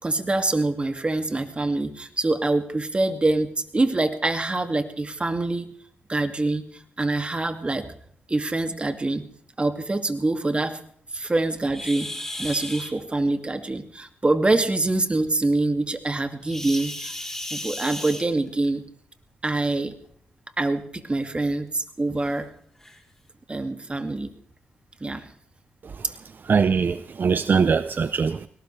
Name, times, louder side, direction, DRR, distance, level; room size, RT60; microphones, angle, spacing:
voice 1, 0.0-5.7 6.1-7.9 8.3-9.2 9.6-10.8 11.1-12.1 12.4-17.1 17.5-18.8 19.4-19.9 20.6-22.5 23.5-24.3 25.0-25.3 26.0-26.1, right 2 dB, 25° right, 8 dB, 2.3 m, -25 dB
sound 1, 11.7-12.9 16.4-18.7 19.9-20.1 20.7-20.8 21.3-21.4 22.2-22.3 22.8-23.0, left 1 dB, 10° left, 4.0 m, -34 dB
voice 2, 26.5-28.5, right 5 dB, 55° right, 14 dB, 0.7 m, -21 dB
21.0 x 19.0 x 3.3 m, 0.63 s
cardioid pair, 65°, 4 cm